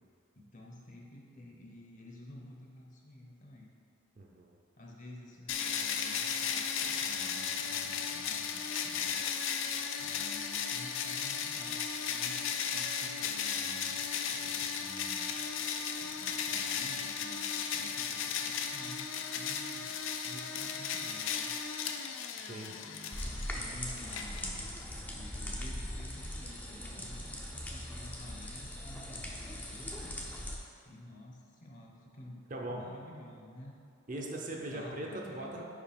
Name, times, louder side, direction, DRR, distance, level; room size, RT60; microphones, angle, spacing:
voice 1, 0.4-3.7 4.8-9.2 10.0-15.5 16.0-19.9 20.2-21.5 22.7-24.6 25.1-30.1 30.8-33.8 34.5-35.6, left 1 dB, 35° left, -2 dB, 0.8 m, -51 dB
voice 2, 4.2-4.6 22.4-22.7 32.5-32.8 34.1-35.6, right 1 dB, 35° right, 0 dB, 0.6 m, -40 dB
sound 1, 5.5-24.8, left 7 dB, 65° left, 0.4 m, -35 dB
sound 2, 23.1-30.6, left 1 dB, 10° left, 0.5 m, -40 dB
5.1 x 4.9 x 5.2 m, 2.4 s
head